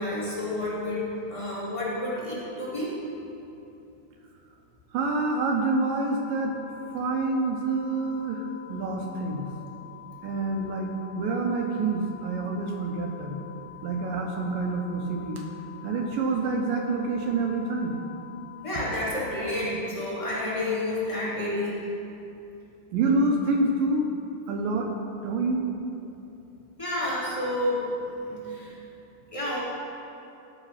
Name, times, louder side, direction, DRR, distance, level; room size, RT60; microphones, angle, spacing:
voice 1, 0.0-3.0 18.6-21.8 26.8-27.8 28.2-28.8 29.3-29.6, left 1 dB, 30° left, -8 dB, 0.5 m, -30 dB
voice 2, 4.9-6.5 6.9-9.5 10.2-13.4 13.8-15.4 15.8-18.0 22.9-24.1 24.5-24.9 25.2-25.7, right 3 dB, 75° right, 2 dB, 2.4 m, -27 dB
sound 1, 5.0-19.8, left 13 dB, 80° left, 2.1 m, -47 dB
14.0 x 5.0 x 5.7 m, 2.8 s
omnidirectional pair, 4.2 m